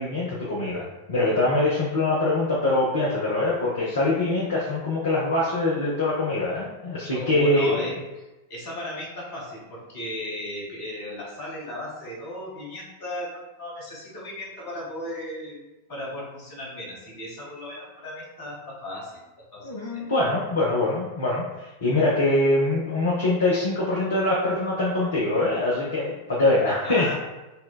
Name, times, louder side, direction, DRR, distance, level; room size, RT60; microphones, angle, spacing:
voice 1, 0.0-8.0 19.6-27.1, left 2 dB, 65° left, -5 dB, 0.7 m, -24 dB
voice 2, 7.1-20.1 26.8-27.1, left 1 dB, 50° left, -4 dB, 1.5 m, -36 dB
5.3 x 2.2 x 2.2 m, 1.1 s
figure-of-eight pair, 90°, 0 cm